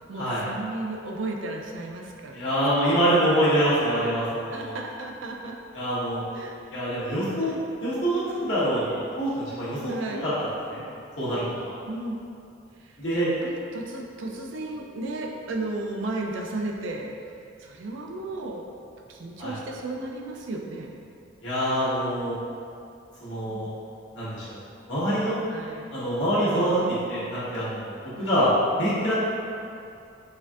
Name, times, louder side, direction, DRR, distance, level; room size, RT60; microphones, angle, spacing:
voice 1, 0.1-2.6 3.2-3.3 4.5-5.5 6.3-6.6 7.4-7.6 9.9-10.3 11.9-12.2 13.1-17.1 17.6-18.6 19.1-20.9 23.5-23.7 25.5-25.9 28.2-28.3, right 2 dB, 75° right, 1 dB, 0.4 m, -34 dB
voice 2, 2.3-4.7 5.7-6.2 6.7-10.3 10.7-10.8 11.2-11.7 13.0-13.3 19.4-19.6 21.4-22.3 23.2-23.7 24.1-24.5 24.9-25.3 25.9-26.8 27.1-27.8 28.2-28.5 28.8-29.2, equal, 70° left, -11 dB, 1.2 m, -25 dB
4.2 x 2.3 x 2.6 m, 2.6 s
head